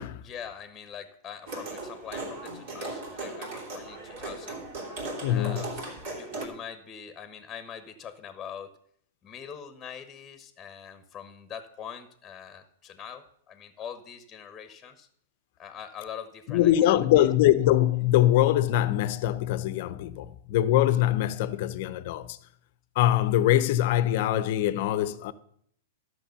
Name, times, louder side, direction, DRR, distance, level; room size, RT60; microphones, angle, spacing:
voice 1, 0.2-4.6 5.2-8.7 9.2-15.1 15.6-17.3, left 8 dB, 20° left, 1.1 m, -43 dB
sound 1, 1.5-6.5, right 2 dB, 55° right, 3.0 m, -37 dB
voice 2, 5.2-5.7 16.5-22.4 23.0-25.3, left 13 dB, 55° left, 0.7 m, -23 dB
12.5 x 6.0 x 6.6 m
hypercardioid pair, 105°, 0 cm